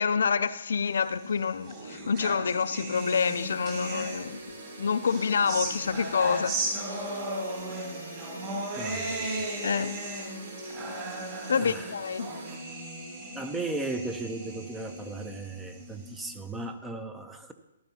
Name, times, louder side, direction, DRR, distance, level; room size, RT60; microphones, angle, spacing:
voice 1, 0.0-4.4 4.8-7.2 9.6-9.9 11.5-12.3, left 6 dB, 75° left, 0.5 m, -27 dB
sound 1, 1.1-4.5 5.0-16.5, right 2 dB, 30° right, 2.9 m, -37 dB
sound 2, 2.9-12.6, right 1 dB, 75° right, 3.8 m, -43 dB
voice 2, 8.8-9.3 11.5-11.9 13.3-17.5, right 2 dB, 5° right, 0.6 m, -36 dB
14.0 x 12.5 x 2.8 m
hypercardioid pair, 160°, 0 cm